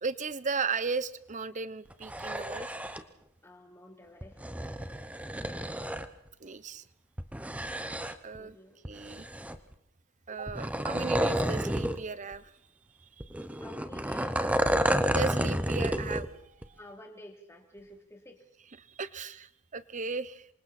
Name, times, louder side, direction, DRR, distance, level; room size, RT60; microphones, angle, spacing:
voice 1, 0.0-2.7 6.4-6.8 8.2-8.6 8.8-9.3 10.3-12.5 13.0-13.6 15.1-16.8 18.8-20.5, right 4 dB, 35° right, 16 dB, 0.8 m, -36 dB
sound 1, 1.9-3.0 4.2-6.1 7.2-8.4 8.8-9.7 10.5-12.0 12.3-12.4 13.2-16.3 16.6-16.7, right 1 dB, 5° right, 0.9 m, -30 dB
voice 2, 3.4-4.4 8.4-8.9 13.6-14.7 16.8-18.4, left 1 dB, 10° left, 2 dB, 3.0 m, -50 dB
27.5 x 25.0 x 4.3 m, 0.73 s
head